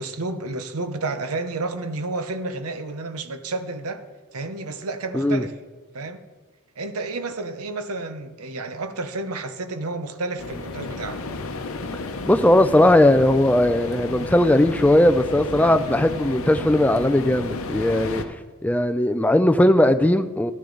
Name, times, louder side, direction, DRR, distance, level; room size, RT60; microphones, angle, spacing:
voice 1, 0.0-4.1 4.3-5.5 5.9-6.2 6.8-11.2, right 3 dB, 90° right, 0.8 m, -31 dB
sound 1, 10.4-18.2, left 3 dB, 70° left, 0.8 m, -32 dB
voice 2, 12.3-18.2 18.6-20.5, left 1 dB, 5° left, 0.3 m, -18 dB
12.0 x 10.0 x 3.9 m
head